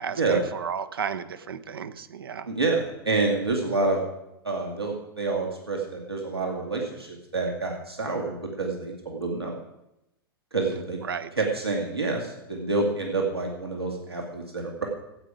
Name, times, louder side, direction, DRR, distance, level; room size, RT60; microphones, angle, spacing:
voice 1, 0.0-2.5 11.0-11.3, right 7 dB, 70° right, 11 dB, 0.8 m, -33 dB
voice 2, 2.5-4.0 4.4-9.5 10.5-11.0 11.4-14.8, right 3 dB, 90° right, -1 dB, 2.4 m, -28 dB
15.0 x 8.6 x 4.9 m, 0.88 s
figure-of-eight pair, 95°, 13 cm